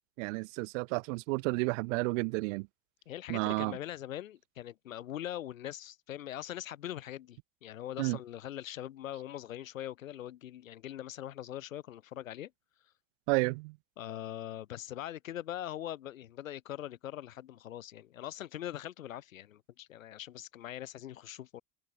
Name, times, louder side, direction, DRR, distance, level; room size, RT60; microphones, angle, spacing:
voice 1, 0.2-2.7 3.3-3.8 8.0-8.2 13.3-13.8, right 28 dB, 70° right, 1.0 m, -31 dB
voice 2, 3.1-12.5 14.0-21.6, left 12 dB, 90° left, 3.2 m, -42 dB
hypercardioid pair, 90°, 39 cm